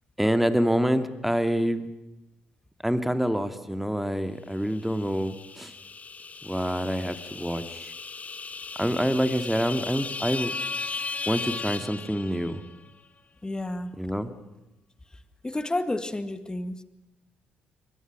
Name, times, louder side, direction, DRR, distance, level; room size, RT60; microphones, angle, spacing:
voice 1, 0.2-1.8 2.8-5.7 6.4-7.8 8.8-10.5 11.3-12.6 14.0-14.3, equal, 5° right, 9 dB, 2.4 m, -26 dB
sound 1, 4.7-12.7, left 4 dB, 30° left, 1.3 m, -36 dB
voice 2, 13.4-13.9 15.4-16.8, left 2 dB, 15° left, 11 dB, 2.1 m, -30 dB
28.0 x 24.0 x 6.2 m, 0.94 s
figure-of-eight pair, 45°, 5 cm